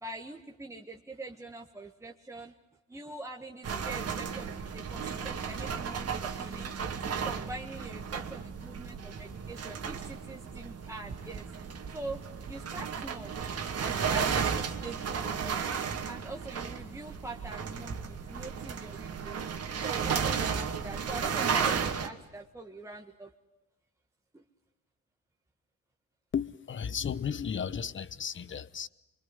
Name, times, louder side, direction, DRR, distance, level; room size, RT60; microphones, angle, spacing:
voice 1, 0.0-2.5 2.9-6.7 7.1-11.4 11.9-13.3 13.8-15.6 16.1-19.4 19.8-23.3 24.3-24.4, right 2 dB, 10° right, 1.6 m, -43 dB
sound 1, 3.6-22.1, right 6 dB, 55° right, 2.4 m, -34 dB
voice 2, 26.3-28.9, left 7 dB, 40° left, 1.0 m, -34 dB
24.0 x 23.5 x 9.9 m
cardioid pair, 90°, 30 cm